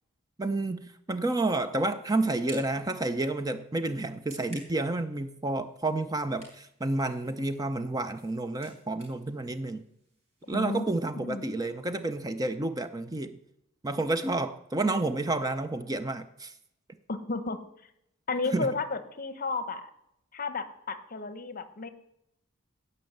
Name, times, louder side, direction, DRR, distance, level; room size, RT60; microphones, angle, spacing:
voice 1, 0.4-9.8 10.5-13.4 13.8-16.5 18.5-18.7, right 2 dB, 20° right, 10 dB, 0.5 m, -30 dB
sound 1, 1.3-10.5, right 1 dB, 35° right, 4.9 m, -56 dB
voice 2, 10.5-10.8 11.1-11.4 17.1-17.6 18.3-19.9 20.3-21.9, left 3 dB, 45° left, 11 dB, 0.9 m, -32 dB
16.5 x 5.6 x 7.8 m, 0.79 s
head